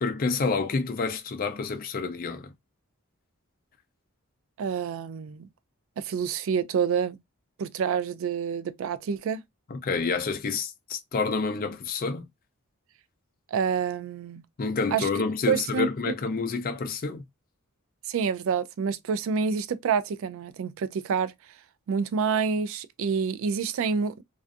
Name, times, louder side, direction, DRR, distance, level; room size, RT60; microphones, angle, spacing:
voice 1, 0.0-2.5 9.7-12.2 14.6-17.2, left 4 dB, 40° left, 0.4 m, -28 dB
voice 2, 4.6-5.5 6.0-7.2 7.6-9.4 13.5-14.4 14.9-15.1 15.5-16.1 18.1-21.3 21.9-24.1, right 6 dB, 65° right, 0.3 m, -27 dB
2.4 x 2.3 x 2.5 m
head